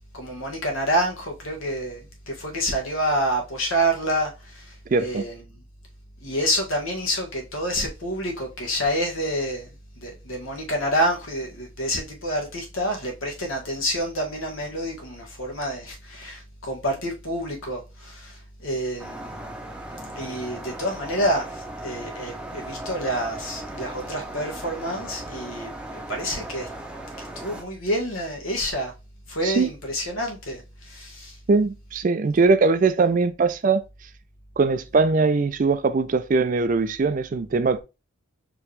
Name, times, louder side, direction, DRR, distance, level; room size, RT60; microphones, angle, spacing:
voice 1, 0.1-4.7 5.0-5.3 6.2-9.7 10.0-19.4 20.1-26.7 27.2-28.9 29.3-31.3, equal, 85° left, 1.5 m, -28 dB
voice 2, 4.9-5.2 29.4-29.7 31.5-33.8 34.6-37.8, right 4 dB, 40° right, 0.4 m, -21 dB
sound 1, 19.0-27.6, right 1 dB, 5° right, 0.6 m, -37 dB
4.7 x 3.0 x 3.2 m
head